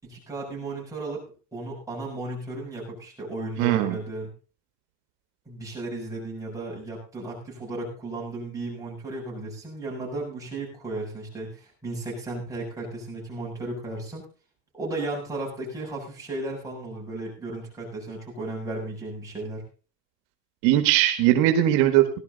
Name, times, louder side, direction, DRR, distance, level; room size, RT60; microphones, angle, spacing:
voice 1, 0.0-1.2 1.5-4.3 5.5-14.2 14.7-19.6, right 2 dB, 10° right, -4 dB, 7.4 m, -34 dB
voice 2, 3.6-4.0 20.6-22.2, right 13 dB, 75° right, 7 dB, 1.8 m, -20 dB
17.5 x 12.0 x 4.0 m, 0.36 s
cardioid pair, 155°, 39 cm